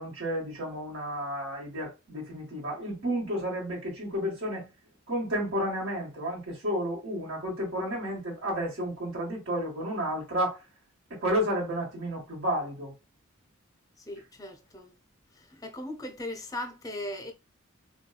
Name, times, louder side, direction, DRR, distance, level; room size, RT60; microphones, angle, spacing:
voice 1, 0.0-4.7 5.1-10.6 11.2-12.9, equal, 60° right, 1.5 m, -31 dB
voice 2, 14.1-14.9 15.5-17.3, left 1 dB, 15° left, 0.6 m, -38 dB
4.4 x 2.3 x 2.3 m
head